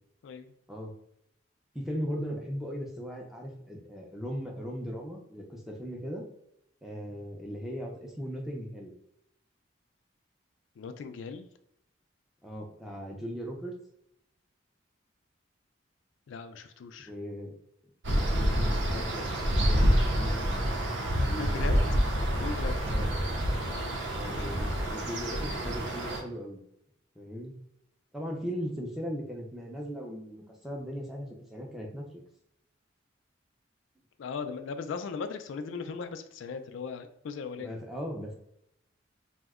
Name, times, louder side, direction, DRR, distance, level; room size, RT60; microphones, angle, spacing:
voice 1, 1.7-6.3 6.8-8.9 12.4-13.7 17.0-17.5 18.1-19.3 19.5-20.9 21.2-22.5 22.8-23.1 24.1-26.6 27.2-27.5 28.1-32.0 37.6-38.3, equal, ahead, -1 dB, 0.5 m, -38 dB
voice 2, 10.8-11.5 16.3-17.1 21.4-21.8 22.4-22.8 23.6-24.5 34.2-37.7, left 5 dB, 75° left, 8 dB, 0.3 m, -38 dB
sound 1, 18.0-26.2, equal, 70° right, 0.6 m, -27 dB
2.7 x 2.1 x 3.6 m, 0.77 s
head